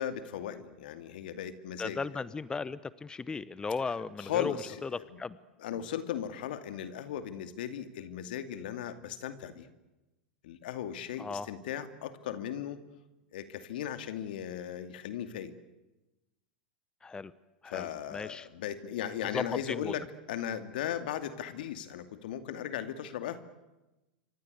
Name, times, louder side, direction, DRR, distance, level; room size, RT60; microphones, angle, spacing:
voice 1, 0.0-2.0 4.2-5.2 5.6-9.7 10.4-12.8 13.3-15.5 17.6-23.4, left 10 dB, 65° left, 10 dB, 2.5 m, -37 dB
voice 2, 1.8-4.5 4.8-4.9 5.2-5.4 11.2-11.5 17.0-17.3 17.6-18.5 19.3-19.9, left 4 dB, 15° left, 17 dB, 0.9 m, -36 dB
28.5 x 25.5 x 8.2 m, 1.0 s
hypercardioid pair, 95°, 5 cm